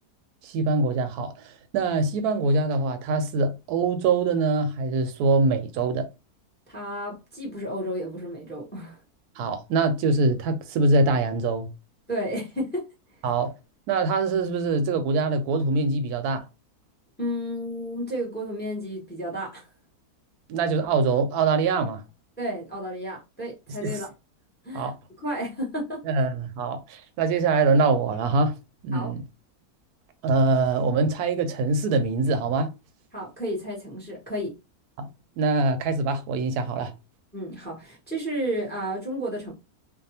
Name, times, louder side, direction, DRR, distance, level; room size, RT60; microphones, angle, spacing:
voice 1, 0.4-6.1 9.4-11.7 13.2-13.5 13.9-16.4 20.5-22.0 23.8-24.0 24.7-24.9 26.0-28.5 28.8-29.2 30.2-32.7 35.0-35.1 35.4-36.9, right 3 dB, 85° right, 1.1 m, -24 dB
voice 2, 6.7-9.0 12.1-12.9 17.2-19.7 22.4-24.1 24.6-24.9 25.2-26.0 28.9-29.1 33.1-34.5 37.3-39.5, equal, 10° left, 0.6 m, -32 dB
2.6 x 2.2 x 2.7 m
omnidirectional pair, 1.6 m